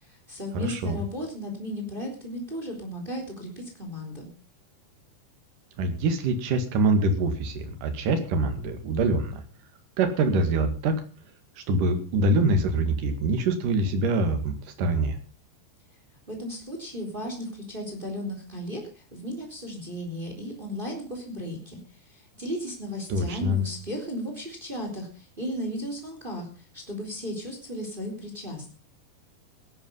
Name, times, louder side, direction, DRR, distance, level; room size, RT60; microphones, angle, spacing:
voice 1, 0.0-4.3 16.3-21.8 22.1-28.7, equal, 10° right, 3 dB, 3.3 m, -35 dB
voice 2, 0.5-1.0 5.8-9.4 10.0-11.0 11.6-15.2 23.1-23.6, right 2 dB, 55° right, 7 dB, 3.2 m, -24 dB
17.0 x 11.5 x 5.6 m, 0.38 s
omnidirectional pair, 5.3 m